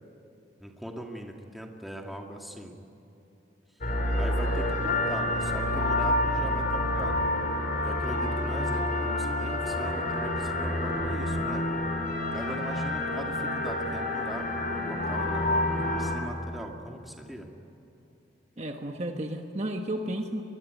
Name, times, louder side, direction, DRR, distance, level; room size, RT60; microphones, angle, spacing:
voice 1, 0.6-2.8 3.8-7.3 7.8-11.7 12.3-17.5, equal, ahead, 1 dB, 2.2 m, -40 dB
sound 1, 3.8-16.2, left 1 dB, 45° left, 4.4 m, -28 dB
voice 2, 18.6-20.4, right 1 dB, 35° right, 4 dB, 1.3 m, -32 dB
22.0 x 22.0 x 9.5 m, 2.9 s
head